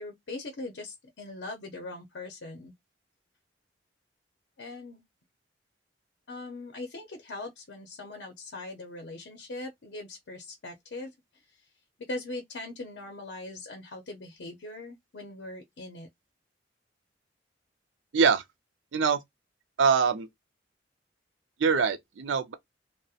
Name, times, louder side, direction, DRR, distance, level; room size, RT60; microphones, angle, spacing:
voice 1, 0.0-2.7 4.6-5.0 6.3-11.7 12.1-16.1, left 2 dB, 70° left, 0.6 m, -41 dB
voice 2, 18.1-18.4 18.9-19.2 19.8-20.3 21.6-22.5, right 5 dB, 85° right, 0.5 m, -23 dB
2.7 x 2.1 x 2.3 m
head